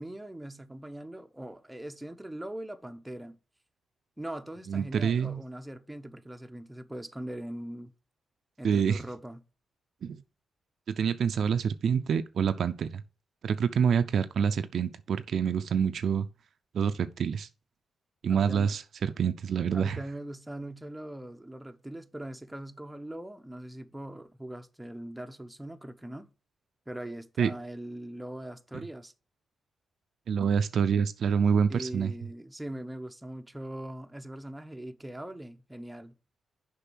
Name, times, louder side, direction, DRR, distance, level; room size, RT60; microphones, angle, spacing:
voice 1, 0.0-3.4 4.2-7.9 8.6-9.4 18.3-18.7 19.7-26.3 26.9-29.1 31.7-36.1, right 1 dB, 10° right, 0.8 m, -41 dB
voice 2, 4.7-5.4 8.6-9.0 10.0-10.2 11.0-13.0 13.4-16.3 16.7-17.5 18.2-20.0 27.4-27.5 28.7-28.8 30.3-32.1, right 7 dB, 70° right, 0.5 m, -27 dB
6.7 x 5.3 x 6.0 m
cardioid pair, 90°, 0 cm